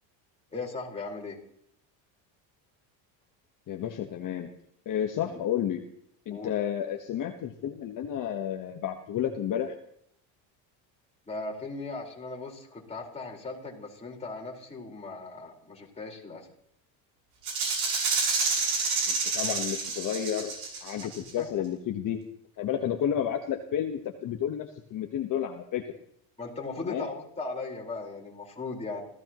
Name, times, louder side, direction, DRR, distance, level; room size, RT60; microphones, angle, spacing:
voice 1, 0.5-1.4 5.2-5.4 6.3-6.5 11.3-16.5 21.0-21.1 21.4-21.5 26.4-29.0, left 3 dB, 15° left, -2 dB, 4.7 m, -38 dB
voice 2, 3.7-4.5 4.8-5.8 6.3-9.7 19.1-20.5 20.8-22.2 22.6-25.8 26.8-27.1, left 9 dB, 45° left, 3 dB, 1.3 m, -31 dB
Rattle (instrument), 17.4-21.3, right 4 dB, 55° right, 8.0 m, -28 dB
29.0 x 15.5 x 3.1 m, 0.70 s
cardioid pair, 135°, 44 cm